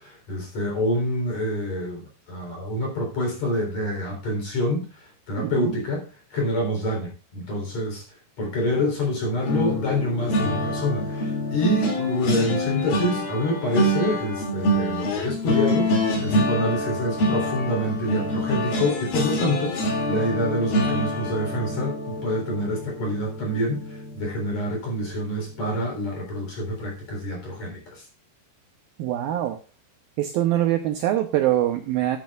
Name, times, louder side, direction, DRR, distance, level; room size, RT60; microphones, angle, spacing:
voice 1, 0.0-4.9 5.3-6.1 6.3-8.0 8.4-23.8 24.1-28.0, left 1 dB, 40° left, 1 dB, 4.6 m, -27 dB
voice 2, 5.4-5.7 29.0-29.6 30.2-32.2, right 13 dB, 80° right, 6 dB, 2.2 m, -23 dB
sound 1, 9.4-24.6 25.0-25.3 25.5-25.8, left 1 dB, 55° left, 4.2 m, -26 dB
13.5 x 11.5 x 2.4 m, 0.31 s
omnidirectional pair, 5.1 m